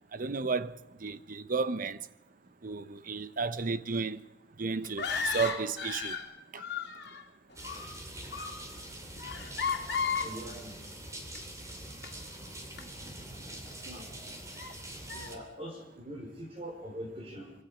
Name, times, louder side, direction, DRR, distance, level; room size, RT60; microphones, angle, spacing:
voice 1, 0.1-2.0 2.6-4.2 4.6-6.2 6.5-6.7 12.8-13.4, right 4 dB, 50° right, 0.8 m, -33 dB
sound 1, 4.8-6.3 6.6-7.2 7.5-8.0 8.3-8.6 9.2-10.3 11.3-11.4 12.0-12.1 12.8-12.9 13.5-13.6 14.6-14.7 15.1-15.3, left 6 dB, 60° left, 2.8 m, -34 dB
sound 2, 7.5-15.4, right 1 dB, 15° right, 3.1 m, -44 dB
voice 2, 10.2-10.8 13.8-14.1 15.1-17.5, equal, 30° right, 5.0 m, -43 dB
25.0 x 23.5 x 5.1 m
head